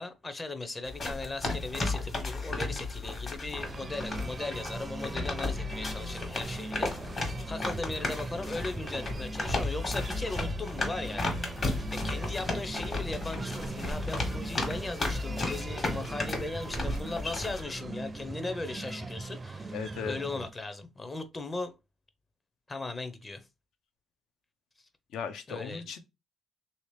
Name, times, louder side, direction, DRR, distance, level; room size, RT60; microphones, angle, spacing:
voice 1, 0.0-11.3 11.9-21.8 22.7-23.5 25.5-25.9, left 3 dB, 25° left, 0.6 m, -38 dB
sound 1, 0.8-17.6, left 2 dB, 40° left, 1.4 m, -34 dB
sound 2, 3.6-20.5, right 3 dB, 30° right, 0.4 m, -40 dB
voice 2, 19.7-20.2 25.1-26.0, left 7 dB, 80° left, 0.6 m, -37 dB
3.2 x 2.8 x 3.1 m
cardioid pair, 90°, 0 cm